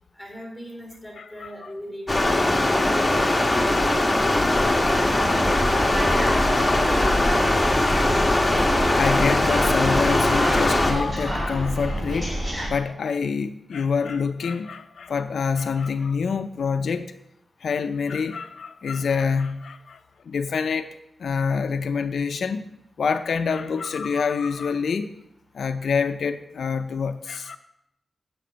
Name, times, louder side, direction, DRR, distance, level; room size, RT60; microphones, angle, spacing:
voice 1, 0.2-3.1, equal, 5° right, 3.8 m, -40 dB
voice 2, 1.2-1.5 5.4-7.6 8.9-12.4 12.7-17.1 17.6-20.0 20.3-20.9 21.2-22.7 23.0-25.1 25.5-27.6, left 5 dB, 75° left, 0.5 m, -26 dB
Stream, 2.1-10.9, left 1 dB, 10° left, 1.2 m, -21 dB
sound 1, 5.2-12.7, equal, 25° right, 2.9 m, -28 dB
8.6 x 7.6 x 5.1 m
wide cardioid pair, 165°, 0 cm